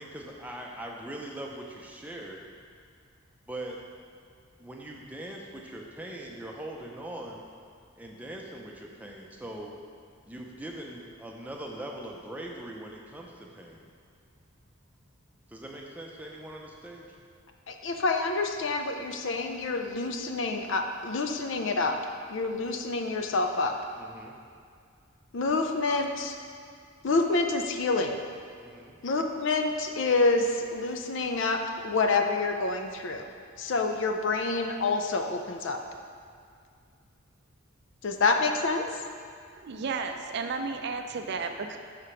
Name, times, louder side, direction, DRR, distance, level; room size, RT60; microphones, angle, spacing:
voice 1, 0.0-2.4 3.5-3.8 4.6-7.4 8.0-9.7 10.2-13.9 15.5-17.1 24.0-24.4 28.6-29.0, right 1 dB, 5° right, -1 dB, 0.6 m, -41 dB
voice 2, 17.7-22.0 22.3-23.7 25.3-26.4 27.0-28.1 29.0-33.3 33.6-35.8 38.0-38.8, left 3 dB, 60° left, 5 dB, 0.5 m, -27 dB
voice 3, 39.6-41.8, right 4 dB, 55° right, 6 dB, 0.4 m, -33 dB
5.0 x 4.9 x 5.6 m, 2.2 s
head